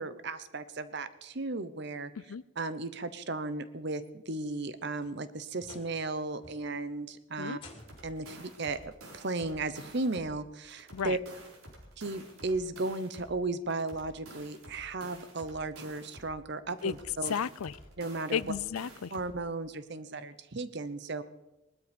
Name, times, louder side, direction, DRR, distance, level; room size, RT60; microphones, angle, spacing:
voice 1, 0.0-7.6 8.0-11.2 12.0-17.3 18.0-18.4 19.1-21.2, right 3 dB, 50° right, 13 dB, 0.9 m, -35 dB
sound 1, 4.5-6.1 6.4-6.9 7.5-8.2 9.4-9.5 10.1-10.2 11.8-11.9, left 2 dB, 25° left, 2.7 m, -54 dB
sound 2, 7.7-10.4 10.7-13.4 13.7-16.4 16.7-19.4, right 1 dB, 80° right, 4.2 m, -50 dB
voice 2, 17.3-17.7 18.3-19.1, left 7 dB, 85° left, 21 dB, 0.5 m, -33 dB
20.0 x 12.5 x 5.3 m, 0.99 s
head